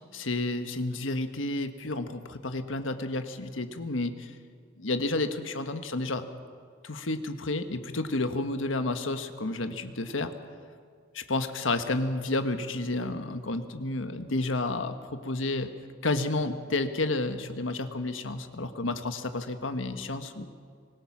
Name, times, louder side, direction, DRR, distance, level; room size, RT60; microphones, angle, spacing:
voice 1, 0.1-4.3 4.8-6.2 6.8-10.3 11.1-15.7 16.0-20.4, left 2 dB, 85° left, 8 dB, 1.4 m, -31 dB
25.0 x 19.5 x 6.1 m, 2.1 s
head